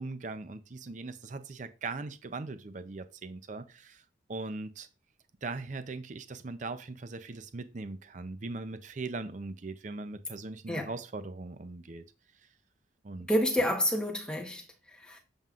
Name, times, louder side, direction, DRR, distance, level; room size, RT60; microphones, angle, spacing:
voice 1, 0.0-4.0 4.3-4.9 5.4-12.0 13.0-13.3, right 3 dB, 40° right, 0.5 m, -40 dB
voice 2, 13.3-15.2, equal, 5° left, 1.0 m, -29 dB
7.4 x 5.3 x 2.4 m
head